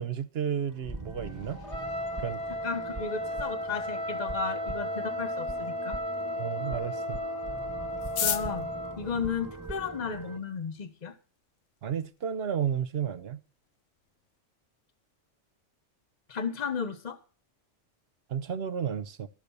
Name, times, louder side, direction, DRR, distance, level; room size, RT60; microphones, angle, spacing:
voice 1, 0.0-1.6 2.2-2.4 6.4-7.2 11.8-13.4 18.3-19.3, right 8 dB, 60° right, 1.0 m, -32 dB
sound 1, 0.7-10.4, right 3 dB, 15° right, 1.0 m, -41 dB
Trumpet, 1.6-9.0, left 1 dB, 65° left, 1.8 m, -35 dB
voice 2, 2.6-6.0 8.2-8.7 9.0-11.1 16.3-17.2, left 6 dB, 35° left, 1.2 m, -34 dB
sound 2, 8.0-10.2 11.0-11.1 11.4-11.5 11.7-12.2 12.5-12.6 12.8-13.2 13.6-13.7 14.1-14.4, left 9 dB, 85° left, 1.1 m, -34 dB
13.0 x 6.7 x 7.0 m
omnidirectional pair, 1.2 m